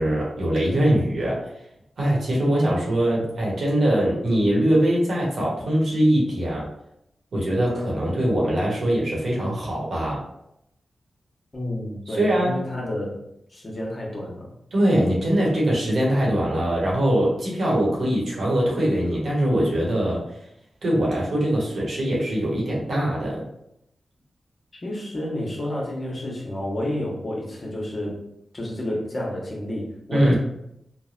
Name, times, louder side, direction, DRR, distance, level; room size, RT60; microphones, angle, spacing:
voice 1, 0.0-1.4 2.0-6.7 7.3-10.3 12.1-12.6 14.7-20.2 20.8-23.4 30.1-30.4, right 1 dB, 70° right, -4 dB, 1.1 m, -22 dB
voice 2, 11.5-13.2 13.5-14.5 24.8-28.2 28.5-30.4, left 1 dB, 45° left, -3 dB, 1.0 m, -30 dB
3.3 x 2.1 x 2.5 m, 0.78 s
cardioid pair, 45°, 0 cm